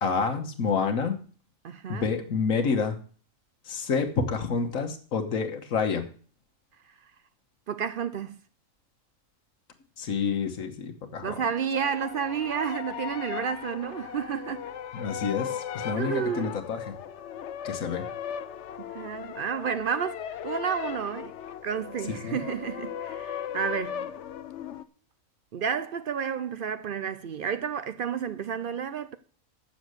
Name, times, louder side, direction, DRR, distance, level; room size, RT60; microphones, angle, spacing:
voice 1, 0.0-1.2 1.9-3.0 3.7-6.1 10.0-11.4 14.9-16.8 17.6-18.1 22.1-22.4, left 5 dB, 80° left, 1.6 m, -28 dB
voice 2, 1.6-2.1 7.7-8.4 11.2-14.7 15.9-16.5 18.9-21.3 21.6-24.1 25.5-29.2, right 7 dB, 60° right, 0.6 m, -31 dB
sound 1, 11.7-24.8, left 9 dB, 65° left, 0.9 m, -37 dB
7.5 x 7.0 x 7.8 m
omnidirectional pair, 1.4 m